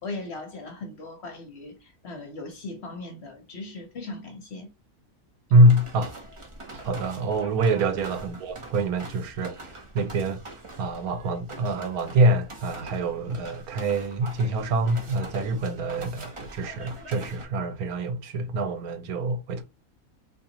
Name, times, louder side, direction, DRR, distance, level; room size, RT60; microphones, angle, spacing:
voice 1, 0.0-4.7 6.7-7.0, left 2 dB, 50° left, 1.0 m, -39 dB
voice 2, 5.5-6.1 6.8-19.6, right 1 dB, 85° right, 1.2 m, -25 dB
sound 1, 5.6-17.4, right 2 dB, 25° right, 0.8 m, -44 dB
3.8 x 2.9 x 2.8 m
omnidirectional pair, 1.5 m